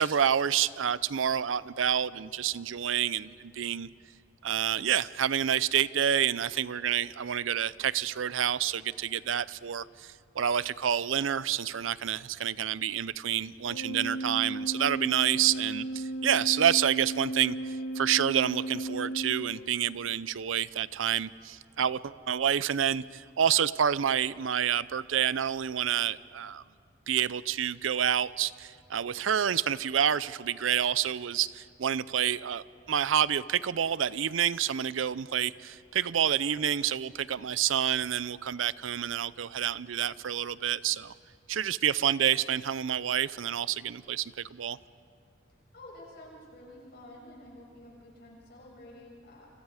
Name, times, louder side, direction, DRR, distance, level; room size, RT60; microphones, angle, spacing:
voice 1, 0.0-3.9 4.4-17.6 18.0-26.6 27.1-41.1 41.5-44.8, right 9 dB, 85° right, 18 dB, 0.5 m, -28 dB
Organ, 13.6-20.2, right 2 dB, 80° left, 1.6 m, -35 dB
voice 2, 45.7-49.5, left 1 dB, 55° left, -4 dB, 7.7 m, -50 dB
29.0 x 26.0 x 4.9 m, 2.4 s
head